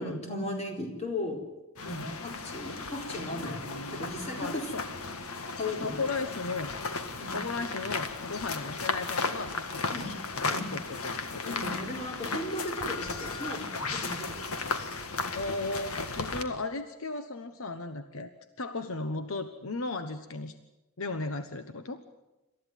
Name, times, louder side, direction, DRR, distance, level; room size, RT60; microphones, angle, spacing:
voice 1, 0.0-1.4 1.9-4.7 5.6-6.0 7.2-7.4 9.9-10.1 10.4-10.7 11.4-14.7, left 1 dB, 30° left, 1 dB, 4.3 m, -36 dB
sound 1, 1.8-16.4, left 4 dB, 90° left, 1.8 m, -35 dB
voice 2, 1.8-2.1 4.4-4.9 5.8-6.7 7.3-11.5 15.3-18.3 18.6-20.6 21.0-22.0, left 3 dB, 70° left, 9 dB, 1.2 m, -36 dB
27.0 x 14.0 x 9.3 m, 1.0 s
head